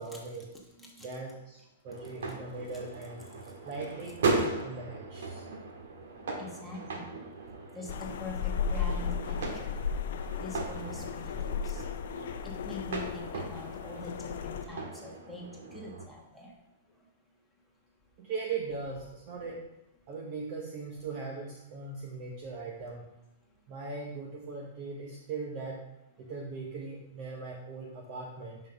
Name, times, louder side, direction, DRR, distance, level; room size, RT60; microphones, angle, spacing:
voice 1, 0.0-0.5 1.0-3.2 3.6-5.4 18.2-19.7 20.1-23.0 23.7-25.8 26.2-28.6, right 4 dB, 35° right, -2 dB, 1.1 m, -39 dB
voice 2, 0.7-1.1 2.2-2.3 6.4-7.1 7.7-9.7 10.4-11.3 11.6-11.8 12.4-15.4 15.7-16.5, left 2 dB, ahead, -3 dB, 1.3 m, -44 dB
sound 1, 1.9-16.1, right 3 dB, 80° right, 1.8 m, -38 dB
sound 2, 7.9-14.6, left 7 dB, 65° left, 0.4 m, -35 dB
5.9 x 5.4 x 5.8 m, 0.92 s
supercardioid pair, 165°, 0 cm